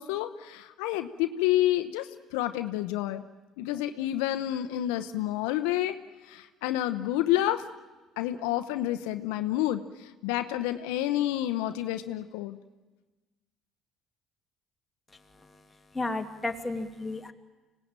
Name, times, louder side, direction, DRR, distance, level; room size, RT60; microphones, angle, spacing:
voice 1, 0.0-3.2 3.6-6.0 6.2-7.6 8.2-12.6, left 13 dB, 85° left, 9 dB, 0.9 m, -29 dB
voice 2, 15.9-17.3, left 2 dB, 15° left, 4 dB, 2.5 m, -32 dB
25.5 x 18.5 x 8.9 m, 1.2 s
supercardioid pair, 75°, 0 cm